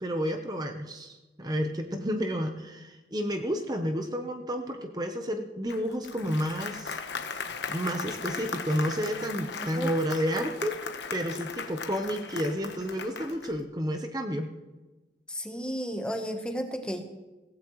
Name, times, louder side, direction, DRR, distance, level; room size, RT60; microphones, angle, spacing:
voice 1, 0.0-7.0 7.7-10.7 11.1-14.5, equal, 20° right, 5 dB, 0.9 m, -31 dB
Applause, 5.7-13.6, left 5 dB, 80° left, 1.1 m, -38 dB
voice 2, 9.6-9.9 15.3-17.0, equal, 5° left, 5 dB, 1.1 m, -33 dB
17.5 x 15.5 x 3.1 m, 1.2 s
head